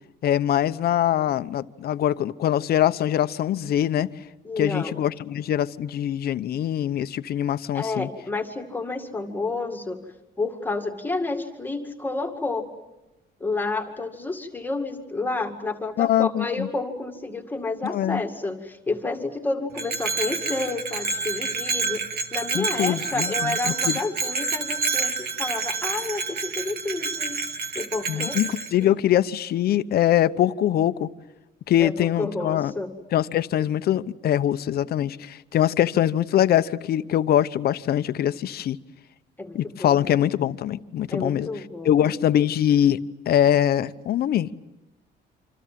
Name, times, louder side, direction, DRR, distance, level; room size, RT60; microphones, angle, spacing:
voice 1, 0.2-4.1 4.6-8.1 16.0-16.7 17.8-18.2 22.5-24.0 28.1-31.1 31.7-32.7 33.1-38.8 39.5-41.5 41.8-43.0 43.3-44.5, left 11 dB, 60° left, 13 dB, 0.9 m, -23 dB
voice 2, 4.4-4.9 7.7-10.0 10.4-12.7 13.4-27.4 27.7-28.4 31.8-31.9 32.2-32.9 39.4-40.2 41.1-42.1, left 3 dB, 10° left, 4 dB, 2.1 m, -30 dB
Bell, 19.7-28.7, right 4 dB, 60° right, 2.0 m, -28 dB
28.0 x 26.5 x 7.6 m, 0.99 s
cardioid pair, 165°, 18 cm